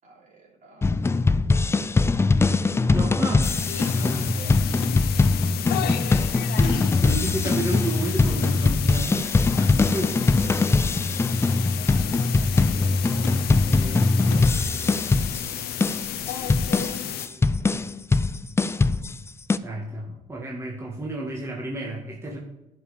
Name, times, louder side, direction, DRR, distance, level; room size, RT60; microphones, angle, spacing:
voice 1, 0.0-1.7 2.6-3.0 3.8-4.8 5.5-6.0 9.7-16.2 16.6-17.7, right 3 dB, 55° right, -3 dB, 3.8 m, -48 dB
sound 1, 0.8-19.6, left 3 dB, 15° left, 0.4 m, -22 dB
voice 2, 2.9-3.5 3.9-4.5 6.6-9.7 9.9-10.7 19.6-22.4, right 2 dB, 15° right, -2 dB, 1.7 m, -32 dB
sound 2, 3.4-17.3, left 10 dB, 90° left, 0.8 m, -32 dB
11.5 x 5.5 x 4.9 m, 0.97 s
cardioid pair, 105°, 16 cm